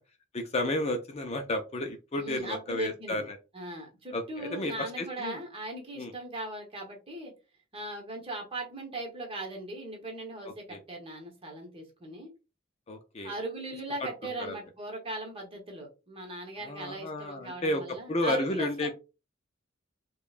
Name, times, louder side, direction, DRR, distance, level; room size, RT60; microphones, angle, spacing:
voice 1, 0.3-3.4 4.1-5.4 6.0-6.1 10.4-10.8 12.9-13.3 14.4-14.6 16.6-18.9, left 1 dB, 35° left, 5 dB, 0.5 m, -32 dB
voice 2, 2.2-3.3 3.5-7.3 7.7-12.3 13.2-18.9, right 2 dB, 30° right, 1 dB, 1.2 m, -39 dB
4.8 x 2.3 x 2.5 m, 0.29 s
head